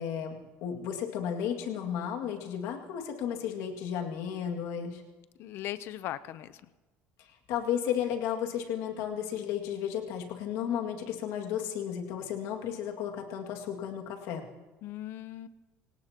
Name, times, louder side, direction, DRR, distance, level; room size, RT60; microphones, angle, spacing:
voice 1, 0.0-5.0 7.5-14.5, left 9 dB, 75° left, 2 dB, 2.2 m, -33 dB
voice 2, 5.4-6.6 14.8-15.5, left 13 dB, 55° left, 14 dB, 0.7 m, -38 dB
25.5 x 17.5 x 3.0 m, 1.2 s
cardioid pair, 145°, 5 cm